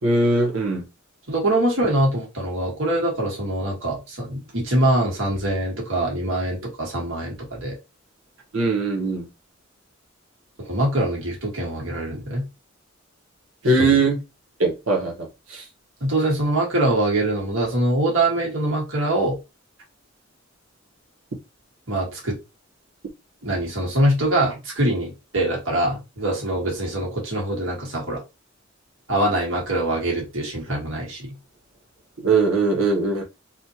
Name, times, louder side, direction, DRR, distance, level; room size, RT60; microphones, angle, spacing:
voice 1, 0.0-0.9 8.5-9.3 13.6-14.2 14.6-15.7 32.2-33.2, right 3 dB, 90° right, 1.4 m, -21 dB
voice 2, 1.3-7.8 10.6-12.5 13.8-13.9 16.0-19.4 21.9-22.4 23.4-28.2 29.1-31.4, right 1 dB, 70° right, 1.8 m, -23 dB
4.2 x 2.5 x 2.9 m
head